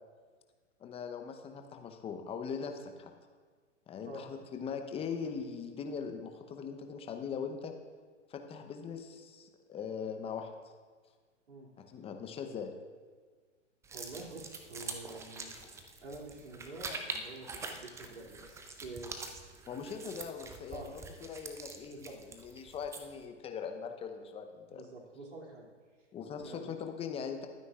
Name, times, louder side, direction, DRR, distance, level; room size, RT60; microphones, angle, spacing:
voice 1, 0.8-3.1 3.9-7.7 8.3-10.5 11.8-12.7 15.5-15.7 19.7-24.8 26.1-27.5, left 6 dB, 15° left, 5 dB, 0.9 m, -41 dB
sound 1, 13.8-23.2, right 3 dB, 10° right, 0.5 m, -45 dB
voice 2, 13.9-15.5 16.0-19.1 20.7-20.9 21.9-22.2 24.7-25.7 26.4-26.7, right 2 dB, 75° right, -2 dB, 2.9 m, -47 dB
21.5 x 9.3 x 2.5 m, 1.5 s
figure-of-eight pair, 115°, 37 cm